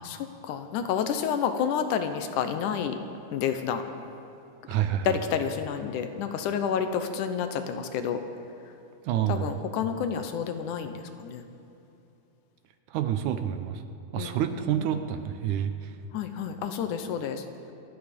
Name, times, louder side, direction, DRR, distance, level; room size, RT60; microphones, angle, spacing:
voice 1, 0.0-3.0 3.3-3.8 5.1-8.2 9.3-10.9 11.2-11.4 14.2-14.9 16.1-17.4, left 7 dB, 75° left, 8 dB, 2.2 m, -29 dB
voice 2, 4.7-5.2 9.0-9.6 12.9-13.8 14.1-16.0, right 10 dB, 75° right, 8 dB, 1.9 m, -28 dB
27.5 x 9.3 x 5.2 m, 2.8 s
omnidirectional pair, 3.8 m